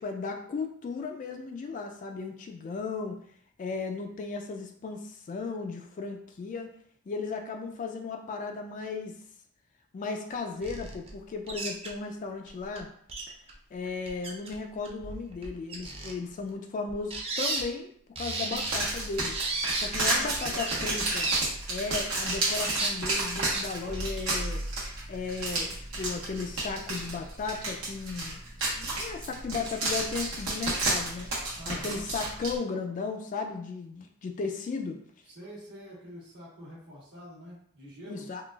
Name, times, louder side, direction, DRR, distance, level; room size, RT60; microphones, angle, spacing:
voice 1, 0.0-3.2 3.6-6.7 7.1-9.2 9.9-12.9 13.7-17.9 18.2-19.4 19.8-21.3 21.7-24.6 25.1-28.4 28.7-31.3 31.7-35.0 38.0-38.4, left 4 dB, 40° left, 4 dB, 0.3 m, -35 dB
sound 1, 10.6-11.1 11.5-11.9 12.5-12.6 12.8-12.9 13.1-13.5 13.9-14.6 14.8-16.1 16.9-17.6 18.2-18.9 19.3-19.9 20.4-21.4 22.3-22.9 23.4-23.6 23.9-24.1, right 2 dB, 30° right, 0.5 m, -33 dB
sound 2, 18.5-32.5, right 2 dB, 80° right, 1.1 m, -31 dB
voice 2, 19.9-20.8 31.6-32.0 35.3-38.3, equal, 55° right, -12 dB, 1.1 m, -46 dB
3.8 x 2.3 x 2.3 m, 0.65 s
head